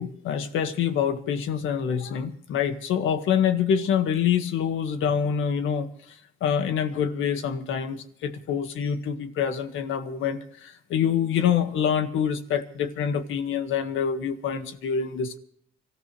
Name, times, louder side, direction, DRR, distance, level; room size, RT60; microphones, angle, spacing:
voice 1, 0.0-5.9 6.4-15.4, left 8 dB, 85° left, 7 dB, 1.7 m, -26 dB
26.0 x 14.5 x 3.2 m, 0.66 s
cardioid pair, 90°, 20 cm